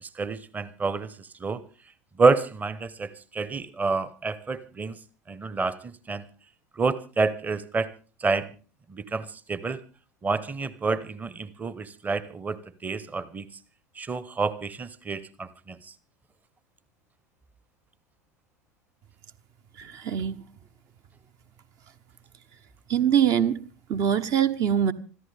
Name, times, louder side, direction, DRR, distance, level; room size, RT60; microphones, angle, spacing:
voice 1, 0.0-1.6 2.2-5.0 5.3-6.2 6.8-7.9 8.2-8.5 8.9-9.8 10.2-13.5 14.0-15.8, right 4 dB, 20° right, 17 dB, 1.0 m, -28 dB
voice 2, 19.8-20.4 22.9-23.6 23.9-24.9, right 9 dB, 40° right, 10 dB, 1.0 m, -23 dB
26.0 x 14.0 x 3.5 m, 0.36 s
figure-of-eight pair, 75°, 9 cm